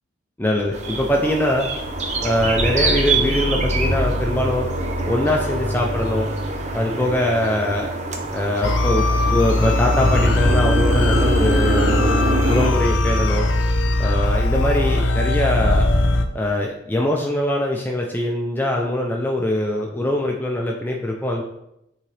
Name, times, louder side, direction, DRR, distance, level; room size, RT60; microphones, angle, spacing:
voice 1, 0.4-1.7 2.2-4.7 5.1-6.3 6.7-7.9 8.3-12.1 12.5-13.5 14.0-15.9 16.3-21.4, left 1 dB, 10° left, 0 dB, 0.4 m, -22 dB
sound 1, 0.6-16.3, equal, 80° right, 2.2 m, -27 dB
sound 2, 0.7-12.7, right 2 dB, 35° right, 0.7 m, -26 dB
sound 3, 8.6-16.2, left 2 dB, 85° left, 0.6 m, -20 dB
8.5 x 3.7 x 3.3 m, 0.83 s
head